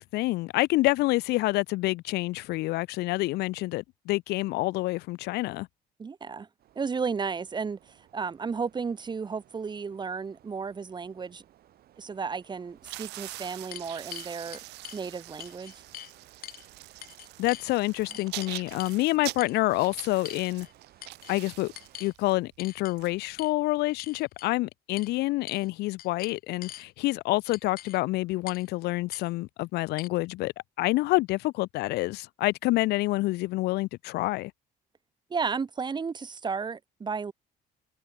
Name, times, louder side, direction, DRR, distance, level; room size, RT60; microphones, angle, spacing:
voice 1, 0.0-5.7 17.4-20.7 21.3-21.7 22.0-30.5 30.8-34.5, left 20 dB, 75° left, 0.4 m, -27 dB
voice 2, 6.0-6.5 6.8-11.4 12.0-14.6 14.9-15.8 35.3-37.3, right 5 dB, 25° right, 1.1 m, -33 dB
sound 1, 6.6-22.1, right 12 dB, 65° right, 4.7 m, -59 dB
sound 2, 12.5-12.6 13.1-15.0 15.4-16.1 16.4-16.6 17.0-17.7 18.1-19.0 19.4-19.6 20.2-20.7 21.0-21.4 21.7-22.1 22.6-22.9 23.4-23.5 24.0-24.5 25.0-25.1 25.5-25.7 26.0-26.8 27.5-28.0 28.5-28.7 29.1-29.2 30.0-30.1, left 13 dB, 60° left, 0.9 m, -44 dB
sound 3, 12.8-23.8, right 19 dB, 85° right, 1.2 m, -44 dB
cardioid pair, 110°, 17 cm